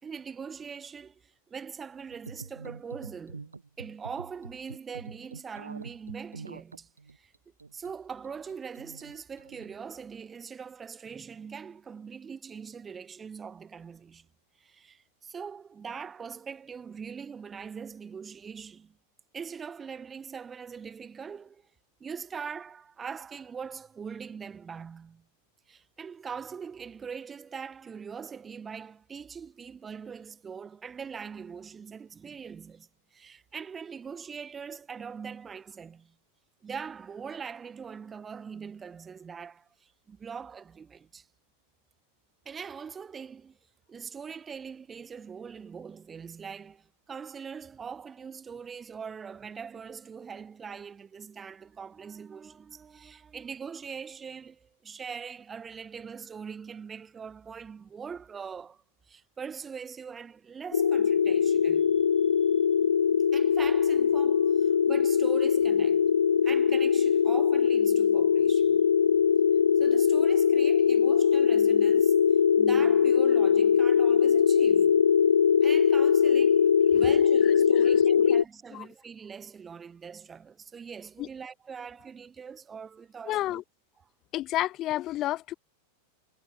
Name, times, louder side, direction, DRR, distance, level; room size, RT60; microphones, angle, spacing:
voice 1, 0.0-7.3 7.7-14.3 14.6-19.0 19.3-21.6 22.0-25.2 25.7-36.1 36.6-41.3 42.5-43.6 43.9-62.0 62.5-62.6 63.3-66.1 66.4-68.9 69.8-72.2 72.6-75.0 75.6-83.6, right 6 dB, 20° right, 3.5 m, -42 dB
sound 1, 2.1-9.8, right 4 dB, 75° right, 6.2 m, -45 dB
sound 2, 60.7-78.4, left 7 dB, 70° left, 0.4 m, -22 dB
voice 2, 77.7-78.3 78.7-78.9 81.2-81.3 83.3-83.6 84.3-85.5, left 14 dB, 35° left, 1.3 m, -31 dB
figure-of-eight pair, 90°, 0 cm